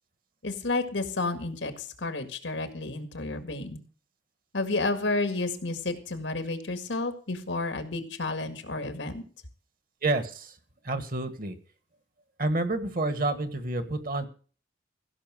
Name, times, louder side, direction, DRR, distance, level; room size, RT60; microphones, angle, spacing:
voice 1, 0.4-3.8 4.5-9.2, left 2 dB, 90° left, 8 dB, 1.9 m, -31 dB
voice 2, 10.0-10.6 10.8-11.6 12.4-14.3, right 2 dB, 50° right, 11 dB, 1.4 m, -29 dB
16.0 x 5.9 x 7.5 m, 0.41 s
head